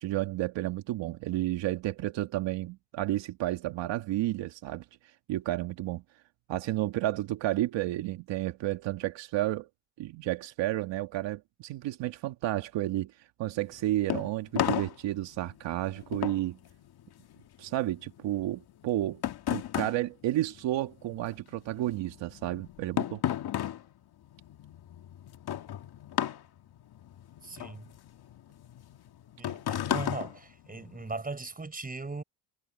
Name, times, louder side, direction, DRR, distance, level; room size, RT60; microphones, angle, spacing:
voice 1, 0.0-4.8 5.3-6.0 6.5-9.7 10.0-13.1 13.4-16.6 17.6-19.2 19.5-23.2, right 15 dB, 80° right, 1.8 m, -31 dB
sound 1, 13.6-21.2 21.5-31.2, left 11 dB, 60° left, 2.0 m, -35 dB
voice 2, 27.4-27.9 29.4-32.2, right 3 dB, 20° right, 5.7 m, -39 dB
cardioid pair, 100°, 43 cm